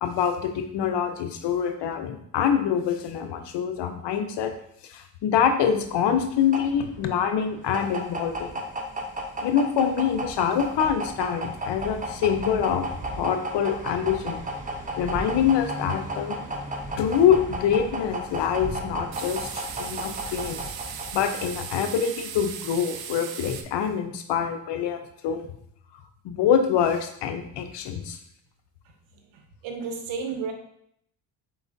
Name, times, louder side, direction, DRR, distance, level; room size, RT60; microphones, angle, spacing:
voice 1, 0.0-4.5 4.8-8.6 9.4-12.8 13.2-14.4 15.0-16.4 17.0-20.6 21.1-25.4 26.2-28.2, left 8 dB, 70° left, 7 dB, 0.7 m, -25 dB
sound 1, 5.8-21.8, right 1 dB, 20° right, 0.7 m, -34 dB
sound 2, 7.8-7.9 8.3-8.4 8.6-8.9 9.3-10.1 10.4-11.6 11.9-13.4 13.8-14.0 14.2-14.3 14.7-15.1 15.4-15.9 16.4-16.8 17.2-17.8 18.2-18.5 19.1-23.6, right 7 dB, 55° right, 0.6 m, -38 dB
voice 2, 29.1-30.5, right 5 dB, 85° right, 4 dB, 0.9 m, -33 dB
4.5 x 3.8 x 2.6 m, 0.70 s
cardioid pair, 80°, 44 cm